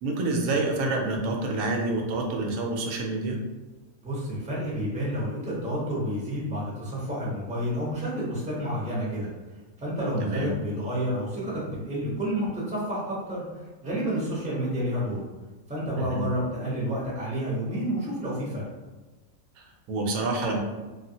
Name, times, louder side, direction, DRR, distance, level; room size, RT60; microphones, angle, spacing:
voice 1, 0.0-3.4 10.2-10.5 16.1-16.3 19.6-20.6, right 2 dB, 80° right, 1 dB, 1.0 m, -28 dB
voice 2, 4.0-9.3 9.8-13.4 13.8-15.2 15.7-18.6, equal, 5° right, -6 dB, 0.6 m, -29 dB
3.3 x 2.4 x 2.7 m, 1.2 s
omnidirectional pair, 1.5 m